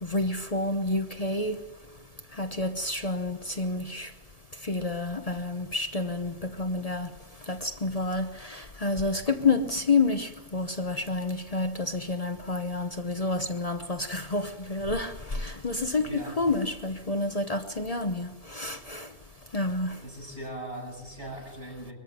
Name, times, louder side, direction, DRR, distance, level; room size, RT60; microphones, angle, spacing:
voice 1, 0.0-1.6 2.4-4.1 4.6-7.1 7.5-19.1 19.5-20.0, left 3 dB, 35° left, 8 dB, 1.0 m, -29 dB
voice 2, 20.0-21.9, right 1 dB, 65° right, -1 dB, 7.4 m, -39 dB
22.5 x 14.0 x 9.4 m, 1.3 s
omnidirectional pair, 1.1 m